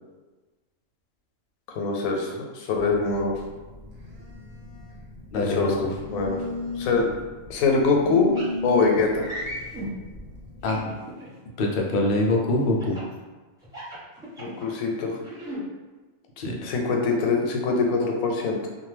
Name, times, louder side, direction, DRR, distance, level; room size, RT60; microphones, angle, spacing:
voice 1, 1.7-3.3 5.3-6.4 6.8-7.1 7.5-8.3 8.6-9.3 14.4-15.2 16.6-18.7, left 4 dB, 85° left, 1 dB, 1.0 m, -24 dB
Telephone, 2.7-10.8, left 2 dB, 70° right, 1.0 m, -37 dB
voice 2, 5.3-5.9 10.6-10.8 11.6-13.0 16.4-16.6, left 2 dB, 65° left, -1 dB, 0.5 m, -24 dB
sound 1, 8.3-8.5 9.2-9.9 10.7-11.3 12.8-13.1 13.6-14.7 15.2-15.6, right 1 dB, 5° right, 0.7 m, -36 dB
2.5 x 2.2 x 3.2 m, 1.3 s
omnidirectional pair, 1.4 m